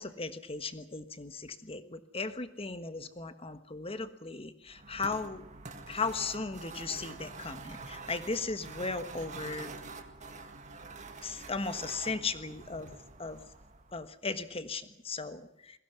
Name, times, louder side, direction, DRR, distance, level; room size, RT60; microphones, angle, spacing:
voice 1, 0.0-5.4 5.9-9.7 11.2-12.9 13.2-13.4 13.9-15.8, left 4 dB, 30° left, 11 dB, 1.4 m, -37 dB
sound 1, 4.7-14.0, right 3 dB, 40° right, 2.0 m, -46 dB
22.0 x 16.5 x 9.6 m, 0.78 s
head